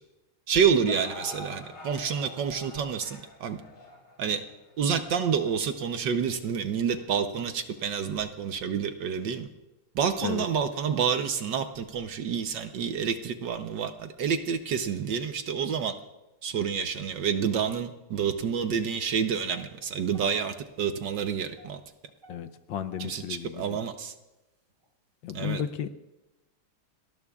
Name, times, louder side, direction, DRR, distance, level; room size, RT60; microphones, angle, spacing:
voice 1, 0.5-3.6 4.2-4.4 4.8-9.5 9.9-15.9 16.4-21.8 23.0-24.1 25.3-25.6, right 7 dB, 65° right, 8 dB, 1.4 m, -28 dB
sound 1, 0.9-7.1 7.8-7.9 8.6-8.7, left 2 dB, 55° left, 3.9 m, -46 dB
sound 2, 19.5-20.7 21.2-23.5 24.0-24.2 24.7-24.9, equal, 40° right, 3.7 m, -52 dB
voice 2, 22.3-23.8 25.2-25.9, left 9 dB, 70° left, 10 dB, 1.4 m, -34 dB
29.5 x 19.0 x 2.4 m, 1.0 s
omnidirectional pair, 2.4 m